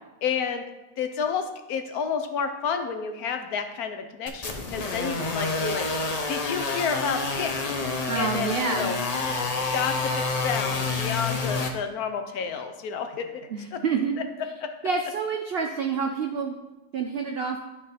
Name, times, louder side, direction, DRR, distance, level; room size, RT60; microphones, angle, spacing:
voice 1, 0.2-0.6 1.0-7.6 8.1-9.0 9.7-13.4 13.7-13.8 14.6-14.7, left 6 dB, 70° left, 7 dB, 1.1 m, -30 dB
sound 1, 4.3-11.7, left 3 dB, 85° left, 0.3 m, -28 dB
voice 2, 8.1-8.9 13.5-14.2 14.8-16.5 16.9-17.6, right 5 dB, 80° right, 2 dB, 0.5 m, -28 dB
11.0 x 3.8 x 4.1 m, 1.1 s
omnidirectional pair, 1.8 m